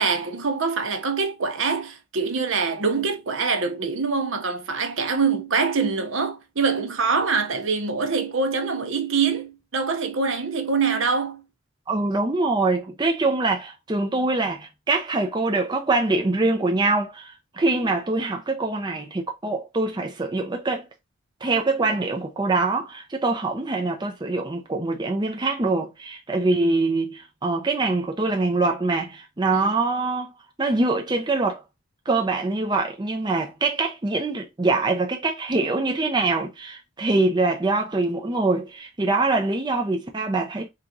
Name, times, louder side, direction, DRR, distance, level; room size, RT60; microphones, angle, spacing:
voice 1, 0.0-11.4 29.5-29.6, right 4 dB, 65° right, 0.8 m, -24 dB
voice 2, 11.9-20.9 21.4-30.3 30.6-31.6 32.1-40.7, right 3 dB, 20° right, 0.5 m, -24 dB
3.8 x 2.9 x 3.8 m
head